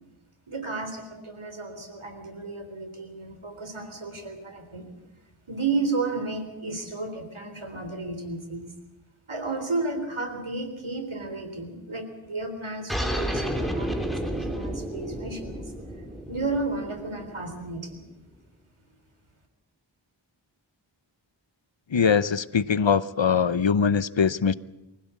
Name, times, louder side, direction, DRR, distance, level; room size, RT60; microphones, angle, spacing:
voice 1, 0.5-4.9 5.5-8.7 9.3-15.6 16.3-18.1, right 3 dB, 85° right, 6 dB, 3.8 m, -33 dB
sound 1, 12.9-18.0, equal, ahead, 3.6 m, -31 dB
voice 2, 21.9-24.5, left 6 dB, 65° left, 16 dB, 0.9 m, -22 dB
24.5 x 16.0 x 8.4 m, 0.98 s
wide cardioid pair, 40°, 48 cm